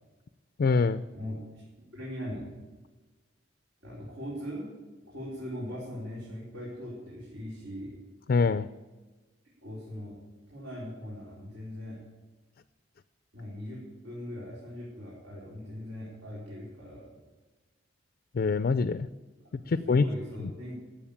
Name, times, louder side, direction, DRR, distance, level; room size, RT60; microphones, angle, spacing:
voice 1, 0.6-1.0 8.3-8.7 18.3-19.1 19.7-20.0 20.4-20.5, left 4 dB, 50° left, 13 dB, 0.3 m, -24 dB
voice 2, 1.1-1.6 1.9-2.5 3.8-4.7 5.1-8.0 9.6-10.2 10.5-12.0 13.3-17.1 19.6-20.8, equal, 90° right, -8 dB, 4.6 m, -40 dB
14.5 x 7.5 x 8.7 m, 1.2 s
head